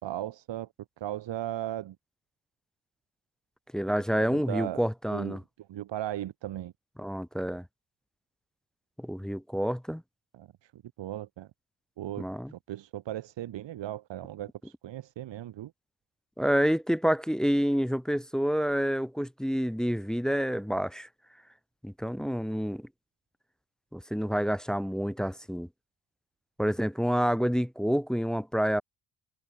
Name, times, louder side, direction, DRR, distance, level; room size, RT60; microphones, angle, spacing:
voice 1, 0.0-0.7 1.0-2.0 4.1-4.8 5.1-5.4 5.7-6.7 10.3-11.5 12.0-15.7, right 13 dB, 75° right, 2.1 m, -37 dB
voice 2, 3.7-5.4 7.0-7.6 9.0-10.0 12.2-12.5 16.4-21.1 21.8-22.9 23.9-25.7 26.6-28.8, equal, ahead, 0.6 m, -28 dB
cardioid pair, 70°, 44 cm